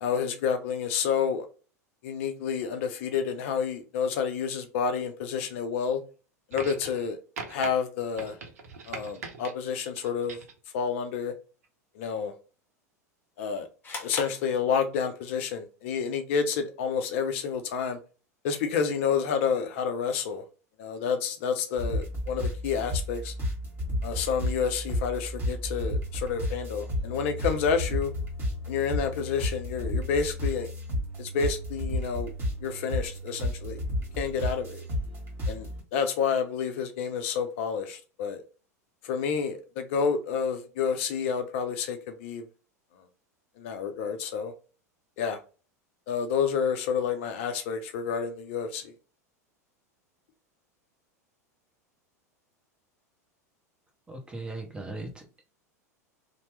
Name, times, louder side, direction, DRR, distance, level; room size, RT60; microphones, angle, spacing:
voice 1, 0.0-1.5 2.0-6.0 6.5-7.2 7.5-8.4 8.9-10.4 10.7-11.3 12.0-12.3 13.4-13.7 14.0-18.0 18.4-20.4 20.8-23.3 24.0-28.1 28.7-30.7 31.2-32.3 32.6-33.8 34.2-34.8 35.5-38.4 39.0-42.4 43.6-44.5 45.2-45.4 46.1-48.9, left 6 dB, 50° left, 0.4 m, -29 dB
sound 1, 6.5-7.1 7.4-7.7 8.2-9.5 10.0-10.6 11.6-11.7, right 4 dB, 60° right, 0.7 m, -40 dB
sound 2, 13.8-15.3, left 3 dB, 20° left, 0.9 m, -40 dB
sound 3, 21.8-35.8, left 1 dB, 25° right, 1.5 m, -32 dB
voice 2, 54.1-55.4, right 2 dB, 10° right, 0.8 m, -38 dB
2.8 x 2.0 x 3.2 m
figure-of-eight pair, 85°, 9 cm